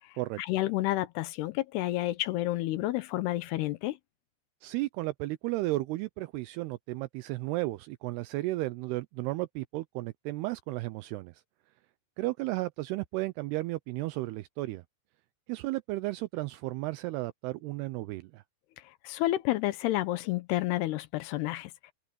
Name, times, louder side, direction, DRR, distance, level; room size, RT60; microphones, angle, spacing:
voice 1, 0.4-4.0 19.0-21.7, left 16 dB, 75° left, 2.6 m, -30 dB
voice 2, 4.6-11.4 12.2-14.8 15.5-18.4, right 19 dB, 85° right, 2.3 m, -34 dB
omnidirectional pair, 5.2 m